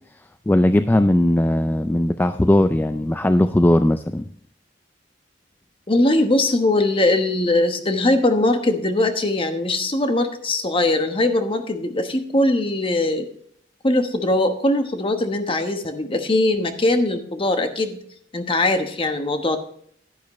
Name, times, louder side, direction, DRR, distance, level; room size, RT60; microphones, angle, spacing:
voice 1, 0.5-4.3, left 1 dB, 10° left, 10 dB, 0.3 m, -18 dB
voice 2, 5.9-13.3 13.8-18.0 18.3-19.6, left 2 dB, 30° left, 7 dB, 1.1 m, -21 dB
10.5 x 10.5 x 3.1 m, 0.62 s
head